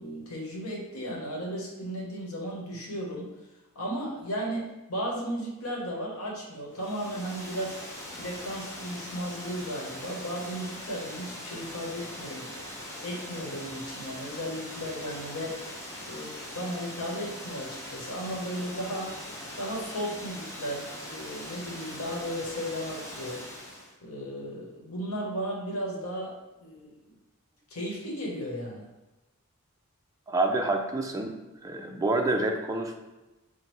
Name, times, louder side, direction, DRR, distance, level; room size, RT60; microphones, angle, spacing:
voice 1, 0.0-3.3 3.7-7.8 8.1-12.5 12.9-15.6 16.1-19.2 19.6-23.4 24.0-27.0 27.7-28.9, equal, 75° left, -3 dB, 1.1 m, -35 dB
Water, 6.7-23.9, left 1 dB, 15° left, 0.7 m, -41 dB
voice 2, 30.3-31.3 31.6-33.0, right 2 dB, 15° right, 3 dB, 0.4 m, -27 dB
6.1 x 2.1 x 3.1 m, 1.1 s
head